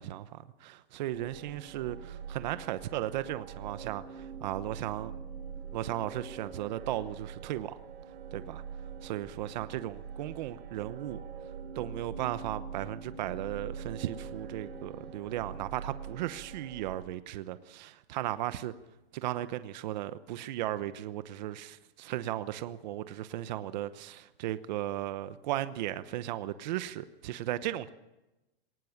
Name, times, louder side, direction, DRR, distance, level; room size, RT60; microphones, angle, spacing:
voice 1, 0.0-5.1 5.7-7.8 8.3-8.6 9.0-11.2 11.7-18.7 19.1-27.9, right 13 dB, 45° right, 1.0 m, -36 dB
sound 1, 1.1-17.1, right 6 dB, 80° right, 3.4 m, -44 dB
21.0 x 19.0 x 7.2 m
supercardioid pair, 165°, 31 cm